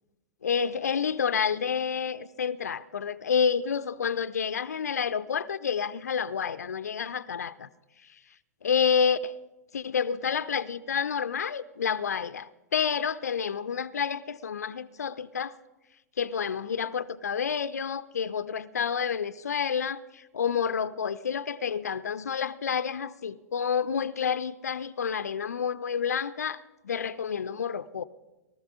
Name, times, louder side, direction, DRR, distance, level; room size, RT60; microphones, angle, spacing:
voice 1, 0.4-7.7 8.6-9.4 9.7-15.5 16.2-28.0, left 7 dB, 70° left, 0.5 m, -29 dB
18.5 x 13.0 x 4.9 m
figure-of-eight pair, 105°, 9 cm